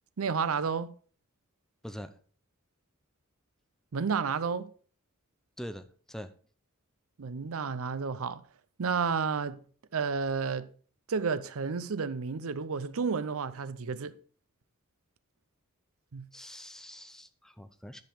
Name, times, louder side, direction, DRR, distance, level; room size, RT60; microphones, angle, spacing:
voice 1, 0.2-0.9 3.9-4.7 7.2-8.4 8.8-9.6 9.9-10.7 11.1-14.2 16.1-16.3, right 5 dB, 65° right, 0.6 m, -31 dB
voice 2, 1.8-2.2 5.6-6.3 16.3-18.0, equal, ahead, 0.6 m, -44 dB
10.5 x 5.1 x 5.0 m
head